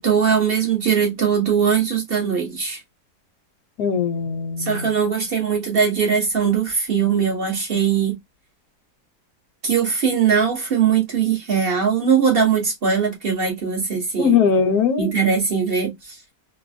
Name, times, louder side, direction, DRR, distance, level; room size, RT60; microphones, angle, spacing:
voice 1, 0.0-2.8 4.6-8.2 9.6-14.4 15.0-16.2, right 7 dB, 40° right, 1.0 m, -20 dB
voice 2, 3.8-4.9 14.2-15.1, left 6 dB, 65° left, 1.2 m, -20 dB
3.2 x 2.1 x 2.5 m
omnidirectional pair, 1.8 m